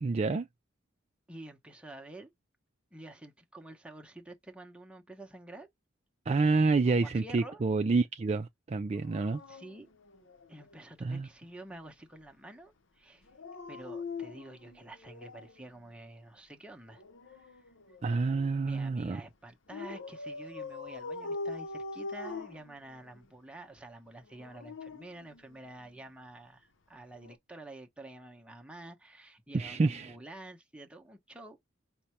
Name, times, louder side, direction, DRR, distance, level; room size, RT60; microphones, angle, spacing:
voice 1, 0.0-0.5 6.3-9.4 11.0-11.3 18.0-19.2 29.5-30.1, right 3 dB, 35° right, 0.4 m, -28 dB
voice 2, 1.3-2.3 2.9-5.7 6.9-7.6 9.5-9.9 10.5-13.2 13.7-17.0 17.3-17.6 18.6-31.6, right 1 dB, 5° right, 0.8 m, -49 dB
Dog, 8.9-10.8 13.2-15.6 16.9-18.6 19.7-23.3 24.2-25.9 27.1-27.4, left 3 dB, 75° left, 0.8 m, -43 dB
5.2 x 2.2 x 2.9 m
head